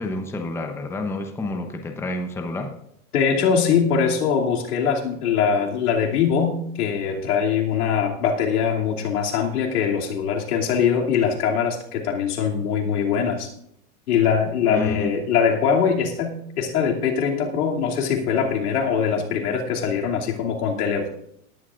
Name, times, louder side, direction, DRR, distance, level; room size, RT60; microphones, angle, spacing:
voice 1, 0.0-2.7 14.7-15.1, left 2 dB, 5° left, 5 dB, 0.8 m, -29 dB
voice 2, 3.1-13.5 14.1-21.1, left 7 dB, 80° left, -1 dB, 2.8 m, -22 dB
18.5 x 11.5 x 2.5 m, 0.71 s
supercardioid pair, 135°, 45 cm